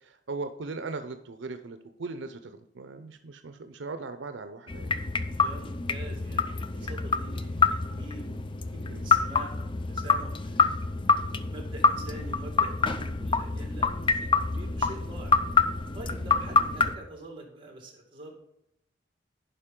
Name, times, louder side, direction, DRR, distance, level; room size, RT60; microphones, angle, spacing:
voice 1, 0.0-4.9 6.3-6.4 6.8-6.9 8.9-9.1 13.2-13.3 16.2-16.3, right 3 dB, 80° right, 9 dB, 0.6 m, -39 dB
sound 1, 4.7-17.0, left 4 dB, 30° left, 0.4 m, -27 dB
voice 2, 5.0-10.9 11.5-15.3 15.9-18.3, right 1 dB, 30° right, 1 dB, 2.1 m, -45 dB
11.0 x 5.2 x 3.7 m, 0.78 s
head